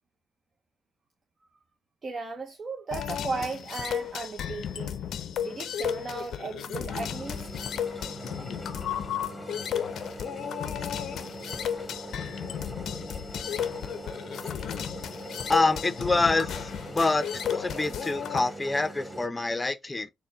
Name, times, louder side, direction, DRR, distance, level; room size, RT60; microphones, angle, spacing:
voice 1, 2.0-5.0 5.4-7.5, right 4 dB, 40° right, 0.7 m, -35 dB
sound 1, 2.9-18.4, left 9 dB, 70° left, 0.5 m, -34 dB
sound 2, 6.7-19.3, equal, ahead, 1.3 m, -41 dB
voice 2, 15.5-20.1, left 3 dB, 20° left, 0.6 m, -26 dB
4.2 x 2.2 x 3.8 m
cardioid pair, 90°, 0 cm